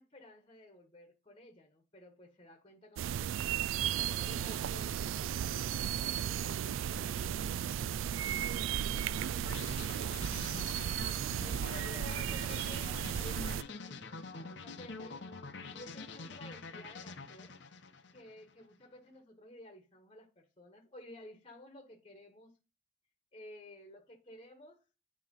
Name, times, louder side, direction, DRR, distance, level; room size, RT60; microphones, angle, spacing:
voice 1, 0.0-3.7 3.9-4.9 10.3-10.9 11.4-15.3 15.7-17.5 18.1-22.5 23.3-25.0, left 1 dB, 25° left, 1.3 m, -53 dB
sound 1, 3.0-13.6, right 9 dB, 90° right, 0.3 m, -35 dB
voice 2, 4.2-4.6 6.4-9.7, right 1 dB, 65° right, 1.1 m, -56 dB
sound 2, 9.5-18.5, left 4 dB, 65° left, 0.9 m, -46 dB
9.4 x 3.1 x 5.3 m
head